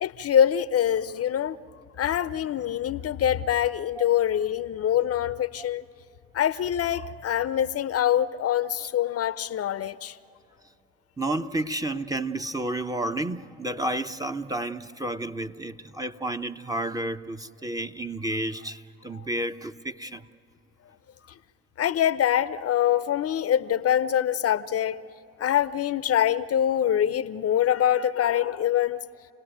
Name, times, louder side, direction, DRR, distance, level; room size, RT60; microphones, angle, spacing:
voice 1, 0.0-1.6 2.0-5.8 6.3-10.2 21.8-25.0 25.4-29.0, left 10 dB, 45° left, 0.7 m, -24 dB
voice 2, 11.2-20.3 21.2-21.3, right 1 dB, 10° right, 0.8 m, -31 dB
28.5 x 18.0 x 9.2 m
hypercardioid pair, 50°, 33 cm